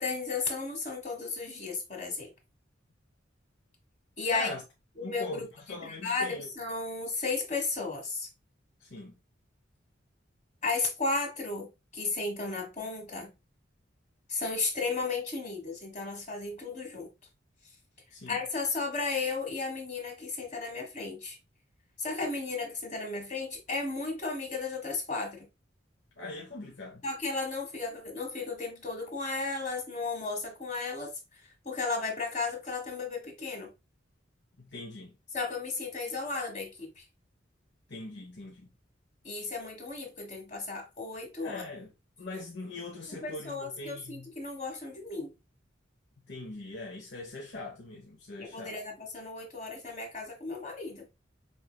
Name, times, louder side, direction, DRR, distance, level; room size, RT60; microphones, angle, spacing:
voice 1, 0.0-2.3 4.2-4.5 5.0-5.5 5.8-8.3 10.6-13.3 14.3-17.1 18.3-21.4 22.0-25.4 27.0-31.1 31.6-33.7 35.3-37.0 39.2-41.6 43.2-45.3 48.4-51.1, left 3 dB, 40° left, 1.4 m, -34 dB
voice 2, 4.3-4.6 5.0-6.5 8.8-9.1 18.1-18.4 26.2-27.0 34.6-35.1 37.9-38.7 41.4-41.9 42.2-44.3 46.3-48.8, left 2 dB, 70° left, 1.0 m, -41 dB
5.5 x 3.2 x 2.2 m
head